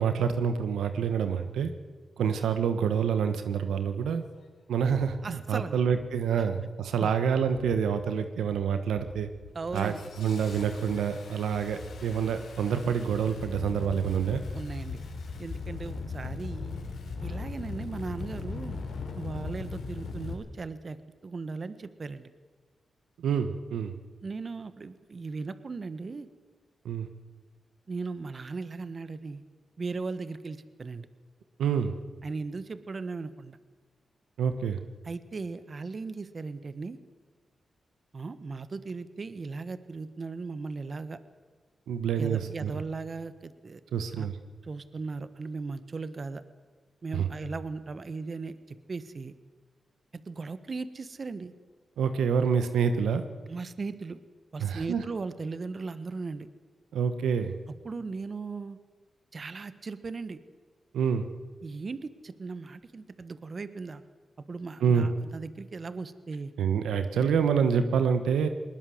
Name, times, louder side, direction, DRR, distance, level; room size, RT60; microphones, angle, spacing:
voice 1, 0.0-1.7 2.2-4.2 4.7-9.3 9.7-14.4 23.2-23.9 26.8-27.1 31.6-31.9 34.4-34.8 41.9-42.7 43.9-44.4 47.1-47.3 52.0-53.2 54.6-55.0 56.9-57.5 60.9-61.3 64.8-65.1 66.6-68.5, right 7 dB, 90° right, 9 dB, 1.3 m, -27 dB
Engine starting, 4.0-4.1 4.8-5.1 5.8-6.2 6.5-7.0 7.5-8.0 8.4-8.6 9.0-20.3, left 4 dB, 80° left, 4.2 m, -39 dB
voice 2, 5.2-5.8 6.4-6.5 6.9-7.1 9.5-10.0 14.5-15.0 15.4-16.8 17.2-18.8 19.1-21.0 21.2-22.3 24.2-26.3 27.9-29.4 29.8-31.1 32.2-33.6 35.0-37.0 38.1-41.2 42.2-43.8 44.2-44.3 44.6-46.4 47.0-49.3 50.3-51.5 53.5-54.2 54.5-56.5 57.8-58.8 59.3-60.4 61.6-64.0 64.5-66.5, right 4 dB, 50° right, 12 dB, 1.4 m, -37 dB
20.5 x 20.0 x 7.9 m, 1.4 s
cardioid pair, 55°, 0 cm